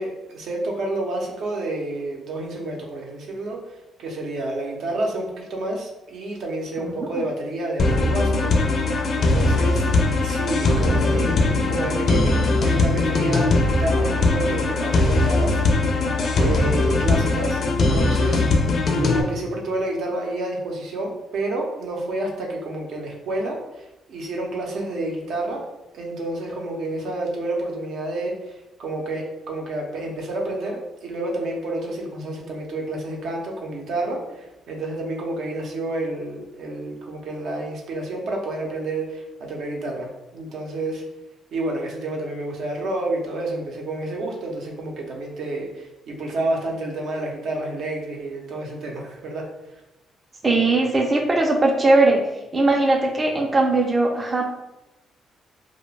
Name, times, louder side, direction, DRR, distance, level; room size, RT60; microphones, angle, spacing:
voice 1, 0.0-9.8 10.2-16.0 16.3-18.4 18.9-25.6 25.9-41.0 41.5-49.5, right 2 dB, 75° right, 0 dB, 0.6 m, -29 dB
voice 2, 6.8-7.2 50.4-52.2 52.5-54.4, right 2 dB, 25° right, 1 dB, 0.4 m, -19 dB
sound 1, 7.8-19.2, left 2 dB, 60° left, 0.4 m, -20 dB
2.3 x 2.1 x 3.2 m, 0.94 s
cardioid pair, 90°, 0 cm